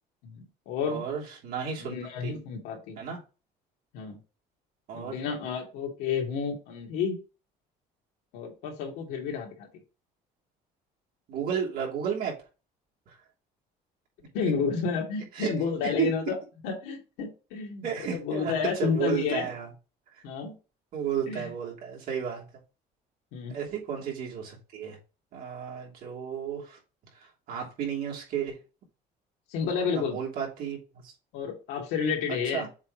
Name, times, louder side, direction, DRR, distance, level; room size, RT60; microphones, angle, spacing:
voice 1, 0.2-1.1 1.8-3.0 3.9-4.2 4.9-7.2 8.3-9.7 14.3-16.4 16.6-19.5 20.2-20.6 21.3-21.5 23.3-23.6 29.5-30.2 31.3-32.7, left 6 dB, 90° left, 0 dB, 2.4 m, -31 dB
voice 2, 0.9-2.0 2.2-2.3 3.0-3.2 4.9-5.2 11.3-12.4 15.4-15.5 15.8-16.1 17.8-18.5 18.8-19.7 20.9-22.4 23.5-25.0 25.3-26.8 27.5-28.6 29.7-30.8 31.0-31.1 32.5-32.7, right 8 dB, 65° right, -2 dB, 2.9 m, -32 dB
7.4 x 3.1 x 5.0 m, 0.32 s
cardioid pair, 120°, 17 cm